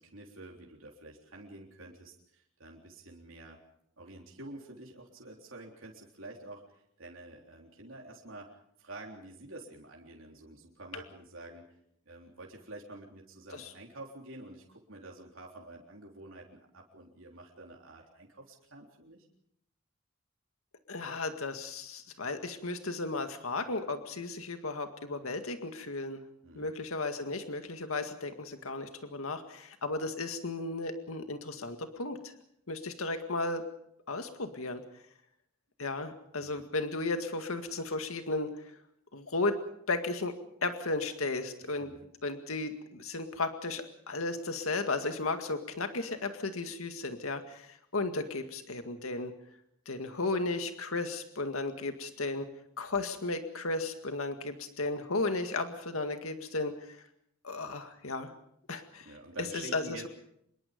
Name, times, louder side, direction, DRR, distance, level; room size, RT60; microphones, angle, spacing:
voice 1, 0.0-3.6 4.0-11.7 12.1-19.3 26.4-26.7 36.4-36.6 41.6-42.0 59.1-60.1, right 2 dB, 70° right, -1 dB, 3.7 m, -48 dB
voice 2, 20.9-26.2 26.6-32.3 32.7-33.6 34.1-34.8 35.8-38.5 39.1-39.6 39.9-40.3 40.6-41.9 42.2-49.3 49.9-52.5 52.8-57.0 57.4-58.3 58.7-59.1 59.5-60.1, left 3 dB, 85° left, 7 dB, 2.0 m, -34 dB
26.0 x 22.5 x 5.3 m, 0.72 s
head